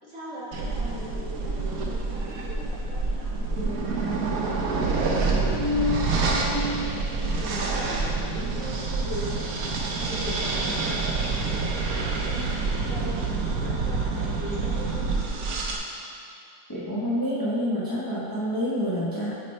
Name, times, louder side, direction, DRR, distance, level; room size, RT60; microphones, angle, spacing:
voice 1, 0.0-4.2 5.0-9.5 10.0-15.2, left 2 dB, 35° right, -9 dB, 1.7 m, -36 dB
sound 1, 0.5-15.8, right 3 dB, 70° right, 0.8 m, -27 dB
voice 2, 16.7-19.3, equal, 30° left, -9 dB, 0.3 m, -27 dB
9.1 x 4.3 x 3.2 m, 2.5 s
omnidirectional pair, 2.3 m